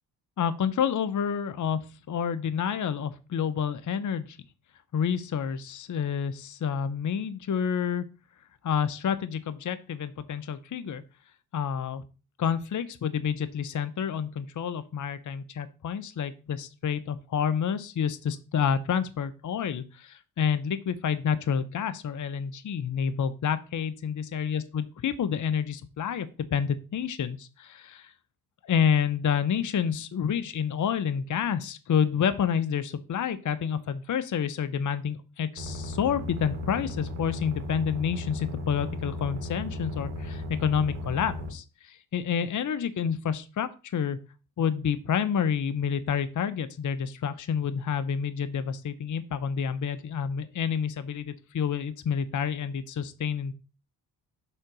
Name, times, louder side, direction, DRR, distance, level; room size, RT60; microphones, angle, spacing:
voice 1, 0.4-1.8 2.1-4.4 4.9-8.0 8.6-11.0 11.5-12.0 12.4-28.1 28.6-44.2 44.6-53.5, left 7 dB, 35° left, 12 dB, 0.9 m, -29 dB
sound 1, 35.6-41.5, left 1 dB, 80° right, 1.8 m, -36 dB
6.5 x 3.9 x 6.1 m, 0.33 s
hypercardioid pair, 50°, 49 cm